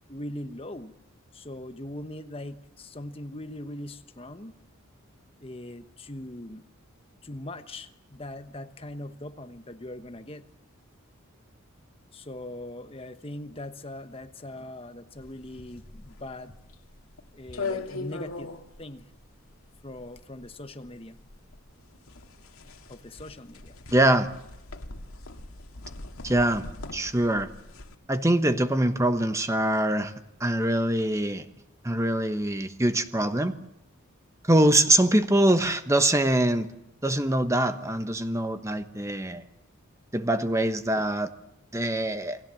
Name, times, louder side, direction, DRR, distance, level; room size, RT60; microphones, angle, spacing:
voice 1, 0.1-1.0 1.3-4.5 5.4-6.6 7.2-10.4 12.1-16.6 17.3-18.5 18.8-19.1 19.8-21.2 22.9-23.7, left 1 dB, 25° left, 9 dB, 1.2 m, -40 dB
sound 1, 15.2-28.0, left 3 dB, 85° left, 2.0 m, -40 dB
voice 2, 23.9-24.3 26.2-26.6 26.9-27.5 28.1-30.1 30.4-31.5 31.8-33.5 34.5-36.7 37.0-39.4 40.1-41.3 41.7-42.4, right 1 dB, 15° right, 9 dB, 1.1 m, -23 dB
29.0 x 20.0 x 7.7 m, 0.86 s
head